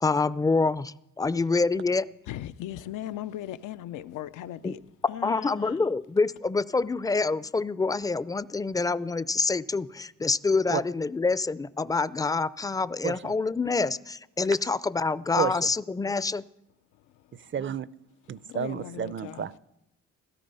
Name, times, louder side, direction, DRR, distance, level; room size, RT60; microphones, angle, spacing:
voice 1, 0.0-2.1 4.6-4.7 5.2-16.4, left 3 dB, 10° left, 0.4 m, -26 dB
voice 2, 2.3-4.8 5.1-5.9 16.9-17.5 18.3-19.5, left 12 dB, 85° left, 0.6 m, -39 dB
voice 3, 15.4-15.7 17.5-17.9 18.3-19.6, right 7 dB, 40° right, 0.6 m, -31 dB
16.5 x 13.0 x 5.5 m
cardioid pair, 90°, 30 cm